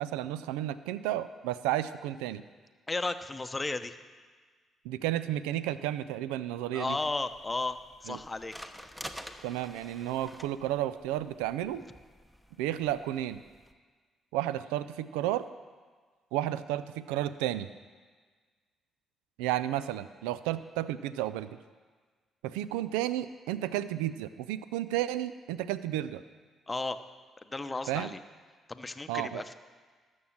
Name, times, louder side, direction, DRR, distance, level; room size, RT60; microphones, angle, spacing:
voice 1, 0.0-2.4 4.8-7.0 8.1-8.2 9.4-11.8 12.6-13.4 14.3-15.5 16.3-17.7 19.4-21.5 22.4-26.2 27.9-28.1 29.1-29.4, right 13 dB, 90° right, 14 dB, 0.3 m, -32 dB
voice 2, 2.9-4.0 6.7-8.5 8.8-8.9 26.7-27.0 27.5-28.2 28.7-29.5, left 3 dB, 25° left, 9 dB, 0.8 m, -34 dB
sound 1, 6.9-13.7, equal, ahead, 0.9 m, -49 dB
13.0 x 6.3 x 7.2 m, 1.5 s
supercardioid pair, 60°, 0 cm